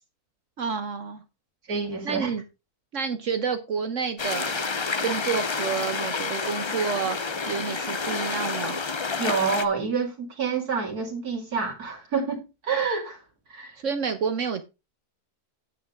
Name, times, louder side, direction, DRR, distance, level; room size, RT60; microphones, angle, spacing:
voice 1, 0.6-1.2 2.0-2.4 2.9-8.8 13.8-14.6, right 6 dB, 60° right, 1.3 m, -29 dB
voice 2, 1.7-2.3 9.2-13.2 13.5-13.8, right 5 dB, 80° right, 3.0 m, -28 dB
sound 1, 4.2-9.7, left 4 dB, 45° left, 0.3 m, -29 dB
9.5 x 8.3 x 3.6 m
omnidirectional pair, 1.6 m